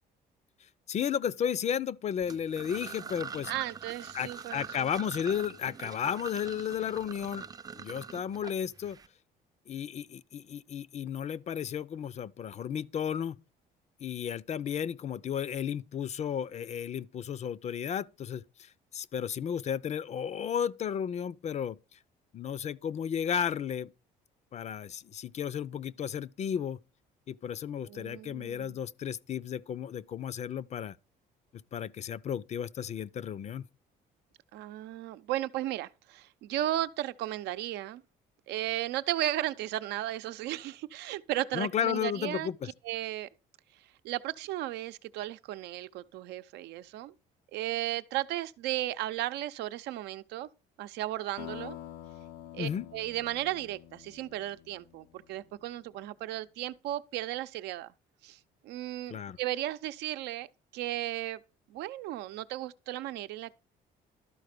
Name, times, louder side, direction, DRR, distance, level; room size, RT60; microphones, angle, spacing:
voice 1, 0.9-3.5 4.1-9.0 9.7-13.4 14.0-22.0 22.3-23.9 24.5-26.8 27.3-31.0 31.7-33.7 41.5-42.7 52.6-52.9 59.1-59.4, left 8 dB, 40° left, 0.5 m, -33 dB
sound 1, 2.2-9.1, right 6 dB, 20° right, 0.5 m, -44 dB
voice 2, 3.5-4.9 27.8-28.8 34.5-38.0 38.5-42.5 42.8-43.3 44.0-47.1 47.5-50.5 50.8-51.8 52.5-57.9 58.2-58.4 58.6-60.5 60.7-61.4 61.7-63.6, right 14 dB, 85° right, 0.7 m, -35 dB
sound 2, 51.4-55.7, left 13 dB, 85° left, 0.7 m, -47 dB
12.5 x 4.3 x 6.6 m
cardioid pair, 110°, 17 cm